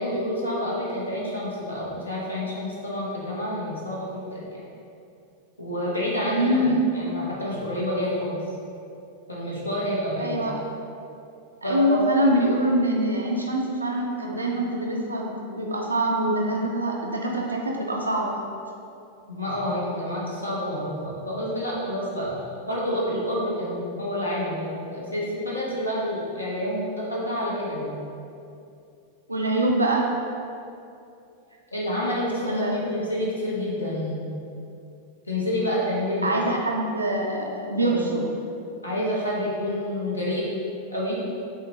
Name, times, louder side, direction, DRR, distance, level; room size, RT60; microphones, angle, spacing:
voice 1, 0.0-4.6 5.6-6.6 6.9-8.4 9.3-10.4 11.6-12.0 19.3-27.9 31.7-34.2 35.3-36.3 37.8-38.2 38.8-40.4 40.9-41.2, left 1 dB, 80° left, -5 dB, 0.8 m, -28 dB
voice 2, 6.3-6.9 10.2-10.6 11.6-18.4 29.3-30.1 32.4-32.9 36.2-38.2, right 1 dB, 80° right, -1 dB, 0.5 m, -24 dB
6.2 x 2.1 x 2.7 m, 2.6 s
figure-of-eight pair, 90°, 0 cm